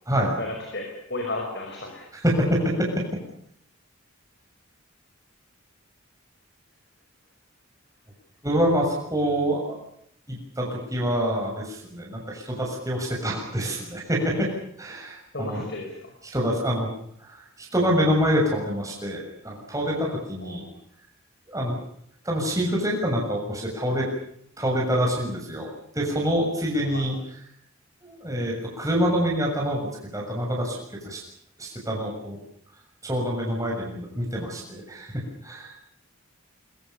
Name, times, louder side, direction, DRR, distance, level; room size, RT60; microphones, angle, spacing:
voice 1, 0.2-2.1 15.3-16.1 20.4-20.6 26.7-27.0, left 2 dB, 55° left, 2 dB, 5.6 m, -34 dB
voice 2, 2.1-2.9 8.4-9.6 10.6-14.5 14.8-15.6 16.3-16.9 17.6-20.6 21.5-21.8 22.2-24.1 24.6-25.7 25.9-27.1 28.0-29.9 30.1-30.8 31.0-31.2 31.6-32.4 33.0-35.7, equal, 15° right, -2 dB, 6.8 m, -26 dB
24.0 x 24.0 x 7.1 m, 0.69 s
head